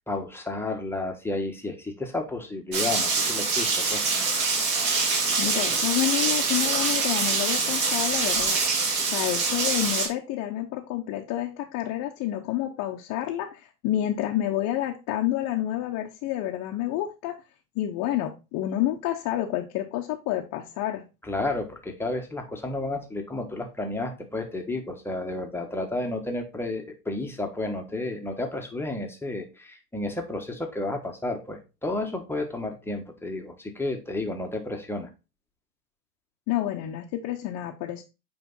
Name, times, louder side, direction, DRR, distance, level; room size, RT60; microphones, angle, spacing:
voice 1, 0.1-4.0 21.2-35.1, left 2 dB, 5° left, 3 dB, 1.3 m, -32 dB
Rain, 2.7-10.1, right 4 dB, 40° right, 3.3 m, -25 dB
voice 2, 5.4-8.6 9.0-17.3 17.7-21.0 36.5-38.0, left 13 dB, 40° left, 0 dB, 1.0 m, -29 dB
9.1 x 3.5 x 4.0 m, 0.28 s
hypercardioid pair, 105°, 46 cm